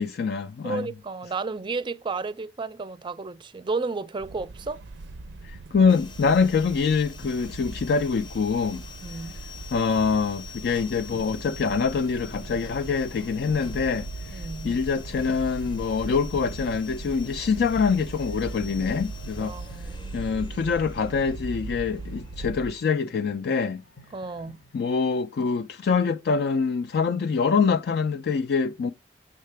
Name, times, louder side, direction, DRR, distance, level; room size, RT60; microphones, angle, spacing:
voice 1, 0.0-0.9 5.4-8.8 9.7-19.5 20.1-23.8 24.7-28.9, left 5 dB, 65° left, 0.4 m, -25 dB
voice 2, 0.6-4.8 9.0-9.4 14.3-14.8 19.4-20.1 24.1-24.6, right 4 dB, 30° right, 0.4 m, -32 dB
sound 1, 4.2-22.7, right 3 dB, 85° right, 0.4 m, -39 dB
sound 2, 5.9-23.1, left 6 dB, 25° left, 0.6 m, -47 dB
sound 3, 8.1-24.8, left 1 dB, 80° left, 1.0 m, -54 dB
6.5 x 6.5 x 3.3 m
head